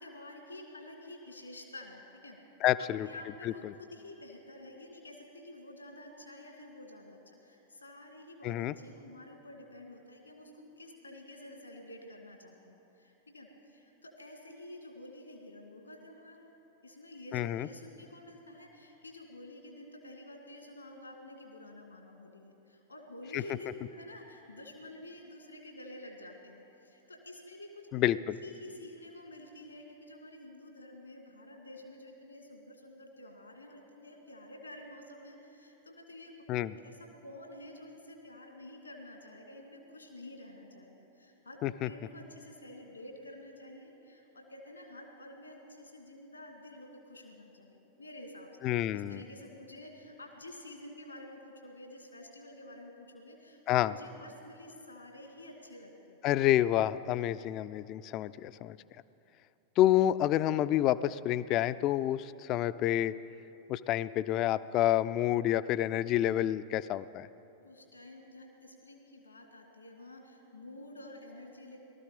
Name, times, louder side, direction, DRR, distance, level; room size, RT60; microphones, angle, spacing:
voice 1, 0.0-2.4 2.8-10.5 10.8-16.5 16.8-27.9 28.4-36.3 36.8-37.0 37.2-48.5 48.9-56.2 67.6-71.8, left 1 dB, 80° left, 3 dB, 1.9 m, -50 dB
voice 2, 2.6-3.1 8.4-8.7 17.3-17.7 23.3-23.4 27.9-28.4 36.5-36.7 41.6-41.9 48.6-49.2 53.7-53.9 56.2-58.8 59.8-63.1 63.7-67.3, left 13 dB, 40° left, 15 dB, 0.4 m, -28 dB
18.5 x 13.0 x 5.2 m, 2.9 s
figure-of-eight pair, 90°, 0 cm